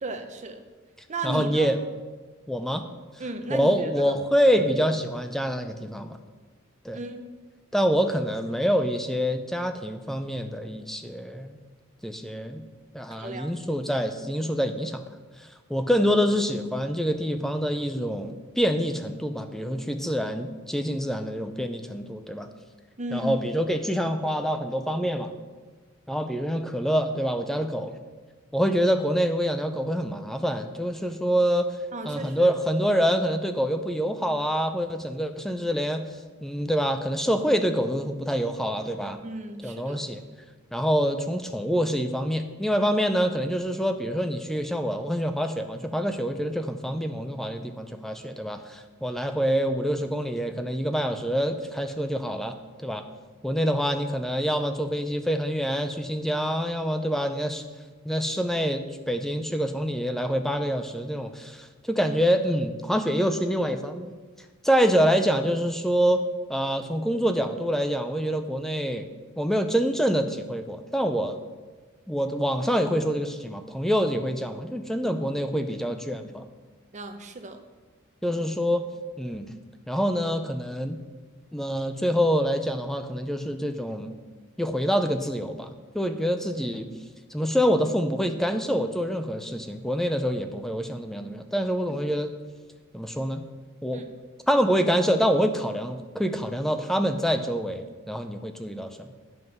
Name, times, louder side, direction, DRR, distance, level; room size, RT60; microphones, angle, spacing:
voice 1, 0.0-0.6 1.1-1.7 3.2-3.7 6.9-7.3 13.2-13.5 23.0-23.4 31.9-32.5 39.2-40.0 76.9-77.6 91.9-92.0 93.9-94.1, right 2 dB, 30° right, 6 dB, 0.7 m, -35 dB
voice 2, 1.2-1.8 2.5-2.8 3.5-6.2 6.8-7.0 7.7-11.6 12.0-12.6 12.9-15.0 15.4-22.5 23.1-25.3 26.1-28.0 28.5-31.8 32.1-36.0 36.4-39.2 39.6-40.2 40.7-53.0 53.4-57.6 58.1-64.1 64.6-66.2 66.5-69.1 69.4-71.4 72.1-76.5 78.2-78.8 79.2-79.5 79.9-81.0 81.5-84.1 84.6-86.9 87.3-92.3 92.9-93.4 93.8-94.0 94.5-99.1, equal, ahead, 7 dB, 0.5 m, -26 dB
9.6 x 5.4 x 6.0 m, 1.4 s
head